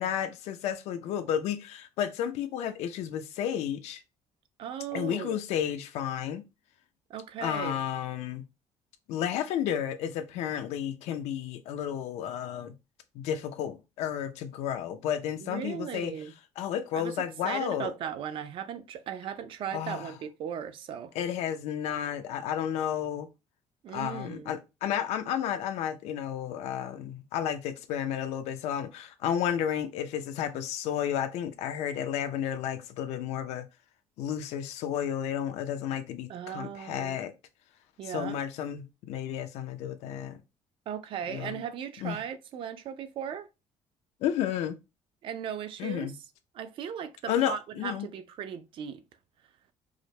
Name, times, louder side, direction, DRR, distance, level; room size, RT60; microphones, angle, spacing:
voice 1, 0.0-4.0 4.9-6.4 7.4-8.4 9.1-12.7 13.1-16.1 16.6-17.9 19.7-20.1 21.1-23.3 23.9-33.7 34.2-37.3 38.0-40.4 41.3-41.6 42.0-42.2 44.2-44.8 45.8-46.1 47.3-48.1, left 9 dB, 85° left, 0.6 m, -32 dB
voice 2, 4.6-5.4 7.1-7.8 15.4-16.3 16.9-17.1 17.4-21.1 23.8-24.5 36.3-37.2 38.0-38.4 40.9-43.5 45.2-46.1 46.5-49.0, right 8 dB, 55° right, 0.4 m, -37 dB
4.8 x 2.1 x 2.8 m
cardioid pair, 155°, 11 cm